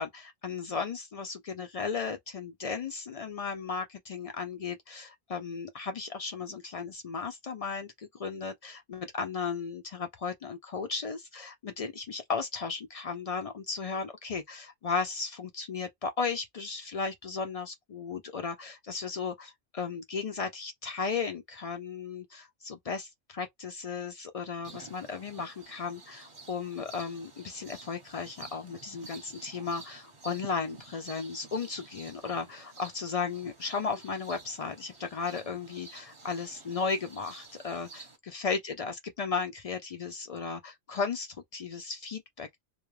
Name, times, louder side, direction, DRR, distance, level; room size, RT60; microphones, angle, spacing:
voice 1, 0.0-42.6, left 5 dB, 65° left, 0.3 m, -35 dB
sound 1, 24.6-38.2, right 3 dB, 30° right, 0.7 m, -51 dB
2.3 x 2.2 x 3.1 m
omnidirectional pair, 1.1 m